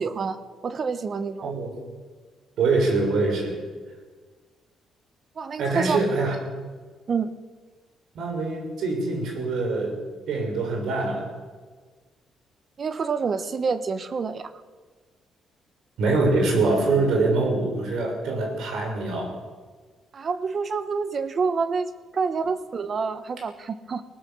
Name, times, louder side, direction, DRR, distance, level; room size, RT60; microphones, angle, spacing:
voice 1, 0.0-1.5 5.4-6.2 7.1-7.3 12.8-14.5 20.1-24.0, right 5 dB, 30° right, 12 dB, 1.2 m, -28 dB
voice 2, 1.4-1.7 2.6-3.6 5.6-6.3 8.1-10.0 10.3-11.3 16.0-19.3, right 3 dB, 65° right, 2 dB, 6.5 m, -24 dB
20.5 x 19.0 x 7.2 m, 1.5 s
cardioid pair, 175°, 0 cm